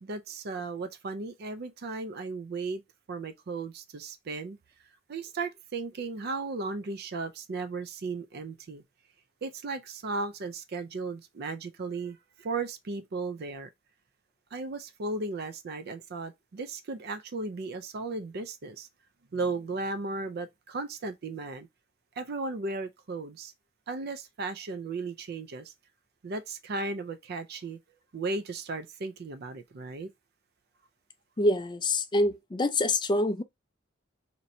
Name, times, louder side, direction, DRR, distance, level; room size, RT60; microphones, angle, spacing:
voice 1, 0.0-2.8 3.1-4.6 5.1-8.8 9.4-13.7 14.5-18.9 19.3-21.7 22.2-23.5 23.9-25.7 26.2-27.8 28.1-30.1, right 3 dB, 55° right, 0.4 m, -35 dB
voice 2, 31.4-33.4, left 1 dB, 25° left, 0.4 m, -26 dB
2.9 x 2.6 x 4.2 m
head